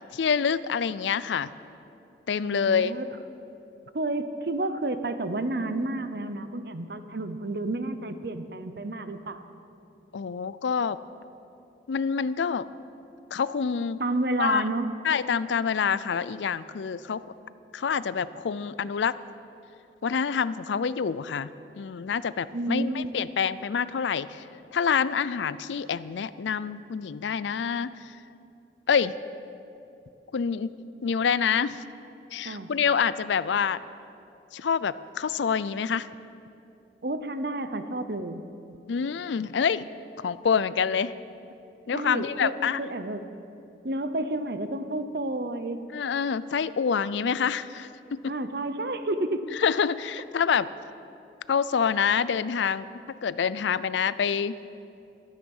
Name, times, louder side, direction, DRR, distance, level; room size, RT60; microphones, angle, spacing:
voice 1, 0.1-1.5 2.3-3.0 10.1-11.0 11.9-12.7 13.3-14.0 14.4-14.6 15.0-17.2 17.7-19.2 20.0-21.5 21.8-24.4 24.7-27.9 28.9-29.2 30.3-30.7 31.0-31.8 32.3-33.8 34.5-36.1 38.9-39.9 40.2-41.1 41.9-42.8 45.9-48.3 49.6-50.7 51.5-52.9 53.2-54.6, left 6 dB, 80° left, 17 dB, 0.4 m, -26 dB
voice 2, 2.4-3.1 3.9-9.4 14.0-14.9 22.5-23.1 32.4-32.7 37.0-38.5 41.9-43.3 43.8-45.8 48.3-49.5, right 2 dB, 60° right, 10 dB, 0.8 m, -30 dB
16.0 x 13.0 x 5.5 m, 2.8 s
head